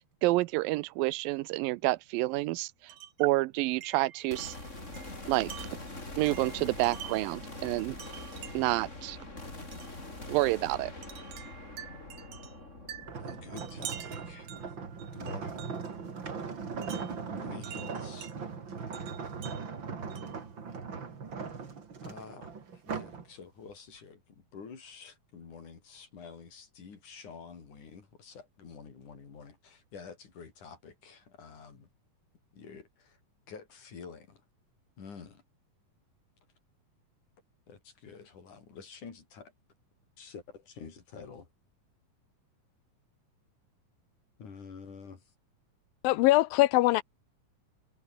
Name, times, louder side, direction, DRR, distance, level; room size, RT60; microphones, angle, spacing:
voice 1, 0.2-2.9 3.2-4.6 5.3-5.5 6.2-8.0 8.5-9.2 10.3-10.9, right 19 dB, 85° right, 2.3 m, -29 dB
Wind chime, 2.9-3.3 3.8-7.4 8.0-8.8 9.7-10.0 11.0-16.0 16.8-18.4 18.9-20.5, right 11 dB, 70° right, 3.2 m, -47 dB
sound 1, 4.3-15.7, left 2 dB, 20° left, 5.4 m, -44 dB
sound 2, 13.0-23.2 23.7-24.0, right 5 dB, 35° right, 3.0 m, -39 dB
voice 2, 13.2-14.6 15.1-15.7 17.3-18.4 22.0-31.9 32.5-33.2 33.5-34.4 35.0-35.4 37.7-39.5 40.2-41.5 44.4-45.3, left 5 dB, 60° left, 5.4 m, -48 dB
voice 3, 46.0-47.0, left 18 dB, 90° left, 2.5 m, -22 dB
omnidirectional pair, 4.1 m